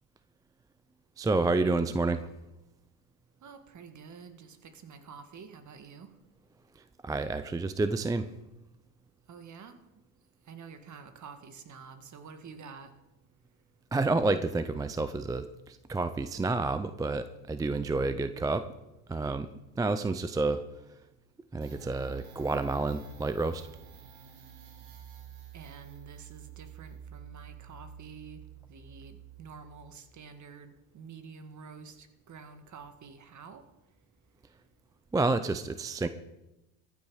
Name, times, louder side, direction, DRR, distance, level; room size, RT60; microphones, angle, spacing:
voice 1, 1.2-2.3 7.0-8.3 13.9-18.6 19.1-19.5 19.8-20.6 21.5-23.6 35.1-36.1, right 3 dB, 10° right, 12 dB, 0.4 m, -29 dB
voice 2, 3.4-6.1 9.3-9.8 10.5-12.9 25.5-28.4 28.7-33.6, right 5 dB, 35° right, 9 dB, 1.8 m, -48 dB
sound 1, 21.6-30.0, right 8 dB, 75° right, 3.5 m, -50 dB
14.5 x 8.8 x 6.3 m, 0.95 s
supercardioid pair, 110°, 49 cm